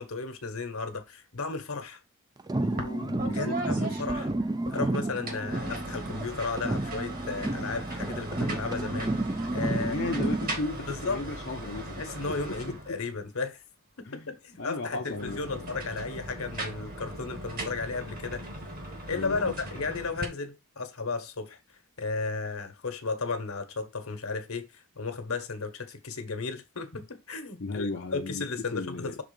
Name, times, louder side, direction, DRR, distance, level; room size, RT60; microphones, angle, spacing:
voice 1, 0.0-2.0 3.3-4.3 4.7-9.2 9.5-10.0 10.9-11.2 12.0-13.6 14.0-18.4 19.1-21.6 22.0-29.2, left 4 dB, 75° left, 1.3 m, -34 dB
sound 1, 2.4-6.3 6.6-10.6, right 2 dB, 20° right, 0.4 m, -31 dB
voice 2, 2.6-3.7 9.8-13.0 14.0-14.3 14.6-15.7 19.1-19.5 27.6-28.5 28.7-29.1, left 2 dB, 50° left, 0.7 m, -36 dB
sound 2, 2.8-2.9 3.2-4.8 5.2-13.2 15.0-20.2, right 1 dB, 40° right, 1.7 m, -38 dB
6.1 x 3.7 x 5.3 m
head